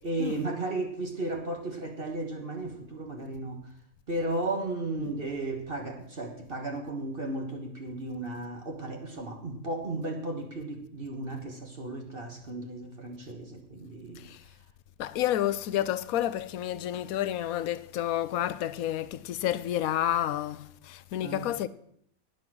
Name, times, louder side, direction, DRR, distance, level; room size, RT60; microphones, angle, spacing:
voice 1, 0.0-3.7 4.1-14.3 21.2-21.5, right 2 dB, 45° right, 1.5 m, -34 dB
voice 2, 15.0-21.7, left 12 dB, 85° left, 1.1 m, -30 dB
11.5 x 9.8 x 6.2 m
omnidirectional pair, 1.4 m